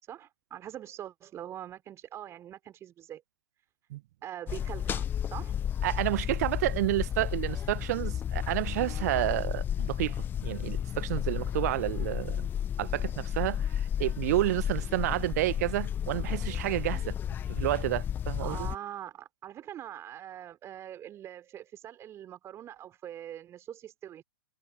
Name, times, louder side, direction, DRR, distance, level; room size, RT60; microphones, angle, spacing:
voice 1, 0.0-3.2 4.2-5.5 18.4-24.2, right 11 dB, 25° right, 3.4 m, -43 dB
sound 1, 4.5-18.8, left 9 dB, 15° left, 0.6 m, -32 dB
voice 2, 5.8-10.2 10.4-12.5 12.8-17.1 17.5-18.7, right 16 dB, 45° right, 0.6 m, -30 dB
figure-of-eight pair, 110°, 12 cm